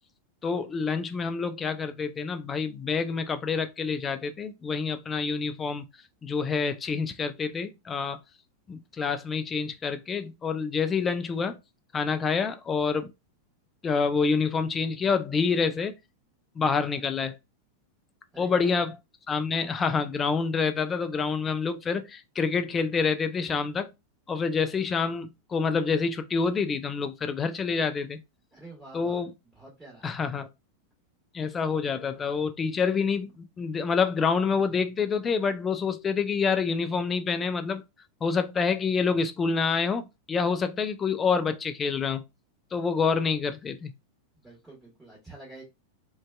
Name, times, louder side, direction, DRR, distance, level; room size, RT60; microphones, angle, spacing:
voice 1, 0.4-5.8 6.2-8.2 8.7-11.6 11.9-13.1 13.8-16.0 16.6-17.3 18.4-19.0 19.3-23.9 24.3-28.2 28.9-29.3 30.0-30.5 31.3-37.8 38.2-42.2 42.7-43.9, left 5 dB, 20° left, 0.3 m, -27 dB
voice 2, 18.3-18.7 28.5-29.2 29.5-30.1 44.4-45.6, right 2 dB, 10° right, 1.1 m, -48 dB
2.5 x 2.2 x 2.3 m
figure-of-eight pair, 90°, 0 cm